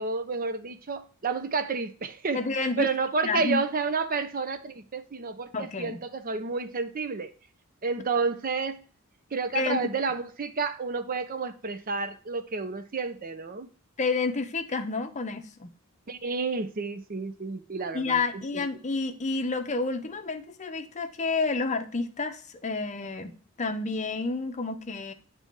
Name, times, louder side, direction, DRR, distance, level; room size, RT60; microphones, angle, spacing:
voice 1, 0.0-7.3 7.8-8.8 9.3-13.7 16.1-18.2 18.5-18.7, right 4 dB, 40° right, 0.6 m, -30 dB
voice 2, 2.3-2.9 3.2-3.6 5.5-6.0 9.5-9.9 14.0-15.7 17.9-25.1, left 3 dB, 35° left, 0.7 m, -30 dB
8.8 x 3.4 x 4.4 m
head